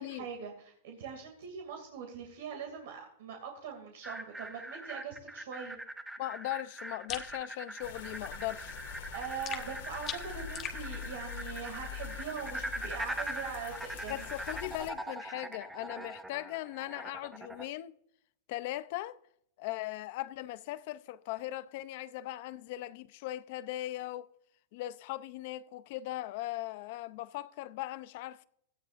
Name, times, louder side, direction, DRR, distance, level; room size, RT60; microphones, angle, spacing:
voice 1, 0.0-5.8 9.1-14.3, right 6 dB, 60° right, 2.5 m, -42 dB
sound 1, 4.0-17.7, right 1 dB, 5° right, 0.6 m, -42 dB
voice 2, 6.2-8.8 14.1-17.9 18.5-19.2 19.6-24.3 24.7-28.4, left 15 dB, 40° left, 0.6 m, -39 dB
sound 2, 7.1-7.3 9.4-10.8, left 9 dB, 20° left, 1.1 m, -40 dB
sound 3, 7.8-14.9, left 9 dB, 60° left, 1.8 m, -45 dB
17.0 x 13.0 x 2.5 m
supercardioid pair, 175°, 0 cm